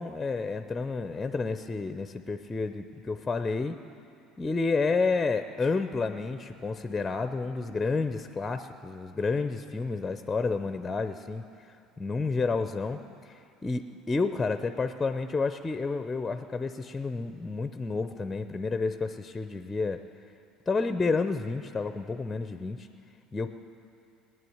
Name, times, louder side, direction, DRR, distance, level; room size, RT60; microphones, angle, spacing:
voice 1, 0.0-3.8 4.4-11.5 12.0-13.3 13.6-20.0 20.7-22.9 23.3-23.5, left 4 dB, 20° left, 9 dB, 0.7 m, -30 dB
19.0 x 9.5 x 8.0 m, 2.6 s
hypercardioid pair, 70°, 0 cm